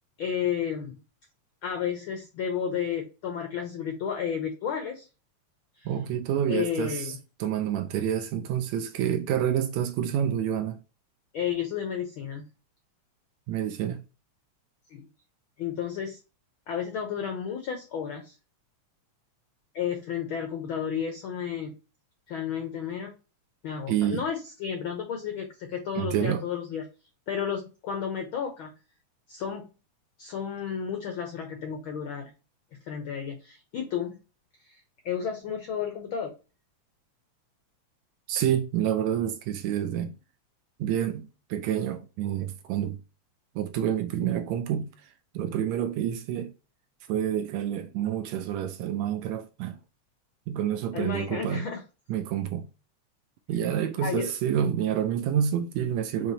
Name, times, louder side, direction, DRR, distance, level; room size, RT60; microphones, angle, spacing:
voice 1, 0.2-1.0 1.6-5.1 5.8-5.9 6.5-7.2 11.3-12.5 14.9-15.1 15.6-16.2 16.7-18.4 19.7-21.7 22.3-23.1 23.6-26.8 27.3-28.7 29.3-29.7 30.2-32.3 32.9-34.2 34.6-36.3 50.9-51.8 54.0-54.3, left 8 dB, 80° left, 1.1 m, -32 dB
voice 2, 5.8-10.8 13.5-14.0 23.9-24.3 26.0-26.4 38.3-40.1 40.8-43.0 43.5-46.5 47.1-49.8 50.5-51.7 52.1-52.7 53.5-56.3, right 9 dB, 80° right, 1.7 m, -28 dB
5.8 x 3.2 x 2.7 m
omnidirectional pair, 3.4 m